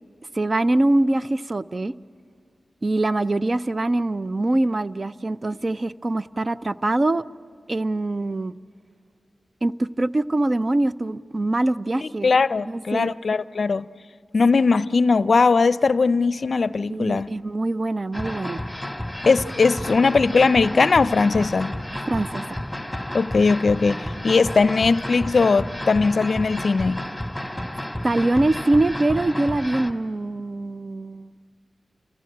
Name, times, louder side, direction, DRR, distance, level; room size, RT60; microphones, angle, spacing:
voice 1, 0.3-1.9 2.8-7.2 7.7-8.6 9.6-12.3 12.7-13.1 16.9-18.6 21.9-22.6 28.0-31.3, right 2 dB, 40° right, 0.5 m, -23 dB
voice 2, 12.0-13.8 14.3-17.3 19.3-21.8 23.1-27.0, left 4 dB, 65° left, 0.5 m, -19 dB
sound 1, 18.1-29.9, left 1 dB, ahead, 1.9 m, -31 dB
30.0 x 15.5 x 8.7 m
cardioid pair, 50°, 0 cm